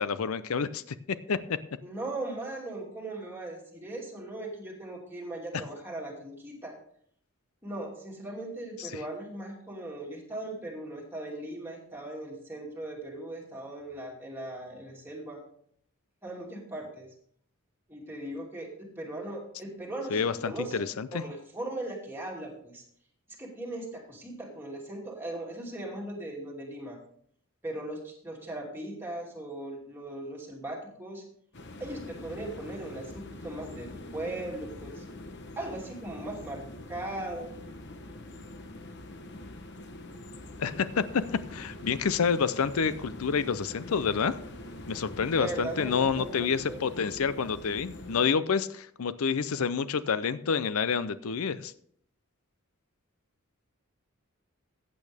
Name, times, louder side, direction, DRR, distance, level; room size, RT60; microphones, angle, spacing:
voice 1, 0.0-1.6 20.1-21.2 40.6-41.2 41.5-44.4 44.9-51.7, left 6 dB, 85° left, 15 dB, 0.5 m, -28 dB
voice 2, 1.8-6.7 7.6-15.4 16.2-17.1 17.9-20.8 21.1-22.8 23.4-27.0 27.6-31.2 31.8-35.0 35.6-37.5 45.4-46.8, right 1 dB, 10° right, -2 dB, 2.6 m, -38 dB
sound 1, 31.5-48.3, left 1 dB, 55° left, 1.0 m, -44 dB
14.5 x 8.5 x 3.5 m, 0.65 s
head